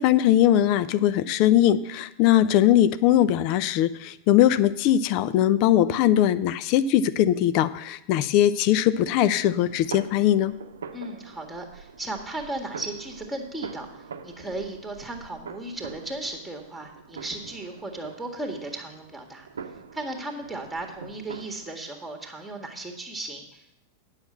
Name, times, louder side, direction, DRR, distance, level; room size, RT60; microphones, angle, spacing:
voice 1, 0.0-10.5, left 12 dB, 45° left, 16 dB, 0.5 m, -20 dB
sound 1, 9.1-21.7, right 6 dB, 70° right, 0.8 m, -43 dB
voice 2, 10.9-19.5 19.9-23.7, right 2 dB, 5° right, 3 dB, 1.7 m, -36 dB
9.6 x 5.7 x 7.5 m, 0.81 s
figure-of-eight pair, 90°, 0 cm